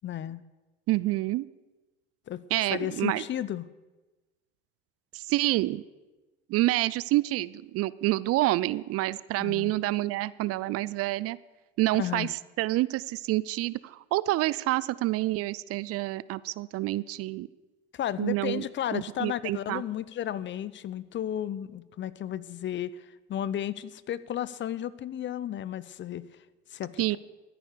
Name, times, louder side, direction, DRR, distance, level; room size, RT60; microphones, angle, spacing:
voice 1, 0.0-0.4 2.3-2.4 2.7-3.7 9.4-9.8 12.0-12.3 17.9-26.3 26.7-27.2, left 11 dB, 40° left, 18 dB, 0.7 m, -33 dB
voice 2, 0.9-1.5 2.5-3.2 5.1-5.8 6.5-11.4 11.8-12.3 12.6-17.5 18.2-18.6 18.9-19.8 27.0-27.2, right 17 dB, 50° right, 20 dB, 0.5 m, -28 dB
13.5 x 10.0 x 6.8 m, 1.1 s
hypercardioid pair, 75°, 30 cm